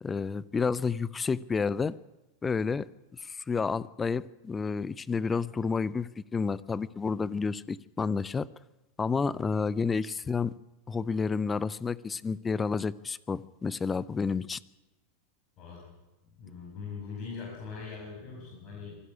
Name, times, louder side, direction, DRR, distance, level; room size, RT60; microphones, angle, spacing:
voice 1, 0.0-1.9 2.4-8.5 9.0-10.5 10.9-14.6, left 5 dB, 20° left, 20 dB, 0.6 m, -30 dB
voice 2, 16.4-19.0, left 5 dB, 40° left, -2 dB, 5.6 m, -41 dB
24.5 x 11.0 x 9.8 m, 1.0 s
figure-of-eight pair, 90°, 0 cm